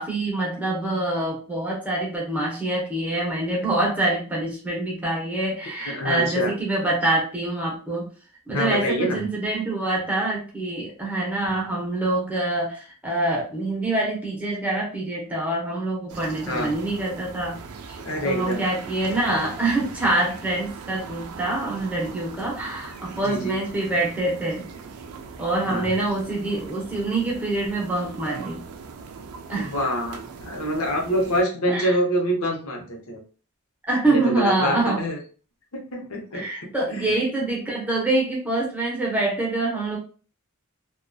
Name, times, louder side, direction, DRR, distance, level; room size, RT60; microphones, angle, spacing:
voice 1, 0.0-8.1 8.5-17.6 17.9-18.0 18.2-24.7 25.4-28.6 29.5-29.7 31.7-31.9 33.9-35.0 36.3-40.0, right 2 dB, 5° right, -3 dB, 0.7 m, -25 dB
voice 2, 5.8-6.5 8.5-9.2 16.5-16.7 18.0-18.6 23.2-23.6 25.7-25.9 29.5-33.2 34.1-35.2 35.7-36.4 36.9-37.1, equal, 65° left, 0 dB, 0.8 m, -26 dB
sound 1, 16.1-31.4, right 5 dB, 80° right, 0.4 m, -40 dB
2.7 x 2.2 x 2.2 m, 0.38 s
head